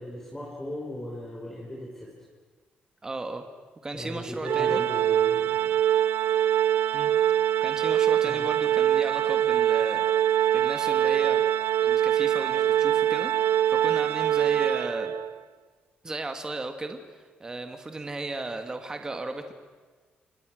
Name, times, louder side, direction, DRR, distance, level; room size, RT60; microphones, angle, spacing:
voice 1, 0.0-2.1 3.9-5.7 8.2-8.5, left 1 dB, 15° left, -3 dB, 5.4 m, -37 dB
voice 2, 3.0-3.4 3.8-4.9 6.9-7.1 7.6-10.0 10.5-11.4 11.8-15.1 16.0-17.0 17.4-19.5, right 2 dB, 20° right, 6 dB, 1.9 m, -35 dB
Organ, 4.5-15.3, right 11 dB, 90° right, 0.7 m, -23 dB
29.0 x 26.5 x 6.5 m, 1.4 s
cardioid pair, 130°, 3 cm